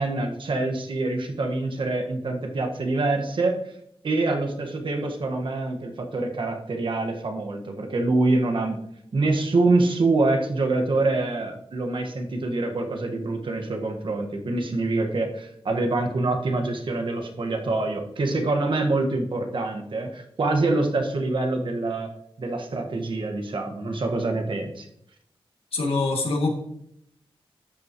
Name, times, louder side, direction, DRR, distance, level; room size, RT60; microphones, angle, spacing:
voice 1, 0.0-3.6 4.0-8.8 9.1-22.1 22.4-24.9, right 2 dB, 60° right, 3 dB, 1.6 m, -25 dB
voice 2, 25.7-26.5, left 3 dB, 80° left, 0 dB, 2.3 m, -24 dB
12.0 x 8.5 x 3.1 m, 0.74 s
wide cardioid pair, 160°, 10 cm